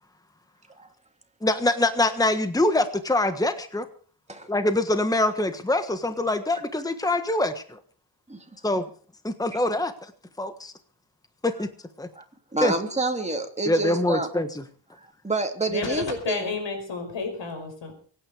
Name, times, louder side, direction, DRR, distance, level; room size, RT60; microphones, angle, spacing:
voice 1, 1.4-3.9 4.5-7.8 8.6-8.8 9.2-9.9 10.4-10.7 11.4-11.7 12.0-12.1 12.6-12.7 13.7-14.5, left 2 dB, 10° left, 9 dB, 1.4 m, -24 dB
voice 2, 12.5-14.3 15.0-16.6, right 3 dB, 15° right, 4 dB, 2.8 m, -28 dB
voice 3, 15.7-17.9, left 4 dB, 75° left, 5 dB, 5.4 m, -31 dB
24.0 x 9.6 x 5.0 m, 0.43 s
cardioid pair, 95°, 44 cm